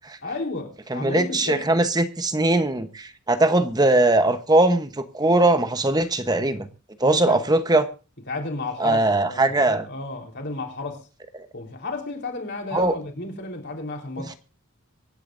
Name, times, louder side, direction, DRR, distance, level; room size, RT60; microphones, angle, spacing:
voice 1, 0.2-1.8 7.0-7.4 8.3-11.0 11.5-14.4, left 2 dB, 50° left, 4.0 m, -33 dB
voice 2, 0.9-6.7 7.0-7.9 8.8-9.9 12.7-12.9, right 2 dB, 20° right, 1.0 m, -20 dB
25.0 x 10.5 x 2.6 m
head